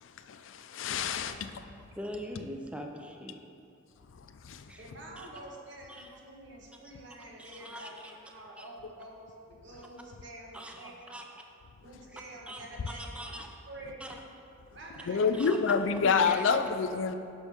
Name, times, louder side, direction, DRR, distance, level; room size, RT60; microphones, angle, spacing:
voice 1, 0.0-1.6 4.4-4.6 15.1-17.2, left 5 dB, 75° left, 0.4 m, -28 dB
voice 2, 2.0-3.4 4.7-4.8 5.2-5.3 5.9-6.1 7.4-8.1 8.6-8.7 10.5-11.3 12.1-12.2 12.5-13.5 14.0-14.2 15.3-15.8 16.2-16.7, equal, 5° right, 0.5 m, -43 dB
voice 3, 4.8-11.2 11.8-13.4 13.7-14.0 14.7-15.9, right 1 dB, 60° right, 1.3 m, -48 dB
9.7 x 6.1 x 3.5 m
head